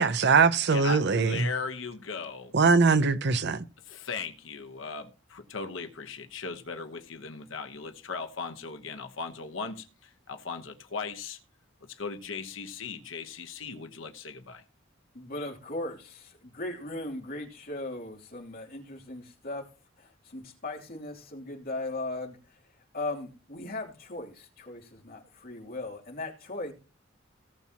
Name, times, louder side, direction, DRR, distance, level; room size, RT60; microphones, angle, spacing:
voice 1, 0.0-1.5 2.5-3.6, right 4 dB, 60° right, 0.7 m, -22 dB
voice 2, 0.7-2.5 3.8-11.4 11.9-14.6, left 5 dB, 75° left, 1.0 m, -38 dB
voice 3, 15.1-19.7 20.0-26.7, left 2 dB, 50° left, 2.9 m, -38 dB
18.0 x 7.2 x 2.9 m
head